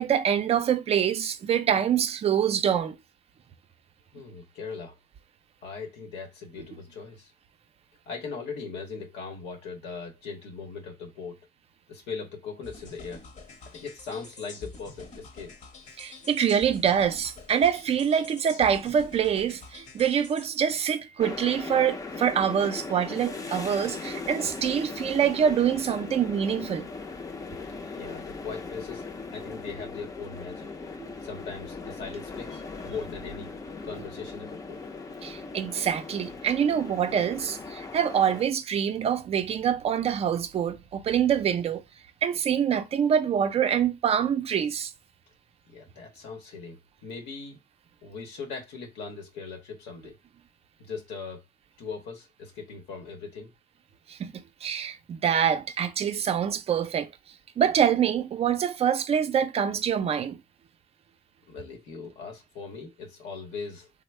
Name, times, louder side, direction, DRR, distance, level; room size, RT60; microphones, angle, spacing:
voice 1, 0.0-3.0 16.0-26.9 35.2-41.8 42.2-44.9 54.1-54.3 54.6-57.1 57.6-60.4, right 8 dB, 35° right, 0.5 m, -25 dB
voice 2, 4.1-5.0 5.6-7.3 8.1-11.4 11.9-13.2 13.7-15.5 27.9-29.0 29.3-30.7 31.2-33.5 33.8-34.8 45.7-47.6 48.0-50.2 50.8-51.4 51.8-53.5 61.5-63.9, left 5 dB, 85° left, 0.9 m, -39 dB
sound 1, 12.6-20.5, left 3 dB, 45° left, 0.9 m, -47 dB
sound 2, 21.2-38.4, left 4 dB, 20° left, 0.5 m, -39 dB
3.3 x 2.1 x 3.1 m
cardioid pair, 110°, 17 cm